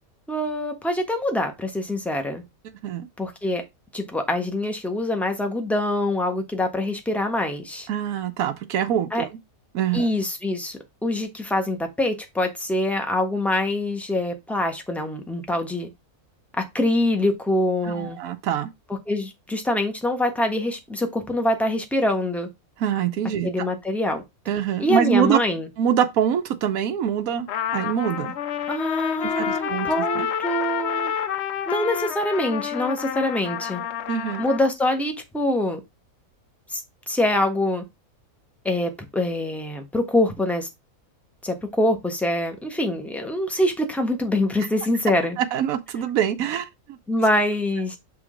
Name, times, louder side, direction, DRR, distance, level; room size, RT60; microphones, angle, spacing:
voice 1, 0.3-2.4 3.2-3.6 3.9-7.9 9.1-9.3 9.9-15.9 16.6-18.2 19.1-22.5 23.4-24.2 24.8-25.7 28.7-31.1 31.7-33.8 34.4-35.8 36.7-36.8 37.1-37.8 38.6-40.7 41.4-45.4 47.1-48.0, left 1 dB, ahead, 1.1 m, -24 dB
voice 2, 7.9-9.3 9.7-10.1 17.8-18.7 22.8-23.5 24.5-25.4 25.8-27.5 27.7-28.3 29.2-29.9 30.2-30.3 34.1-34.4 45.4-47.0, right 9 dB, 75° right, 1.1 m, -24 dB
Trumpet, 27.5-34.7, left 9 dB, 60° left, 0.8 m, -29 dB
6.3 x 3.8 x 4.9 m
omnidirectional pair, 1.5 m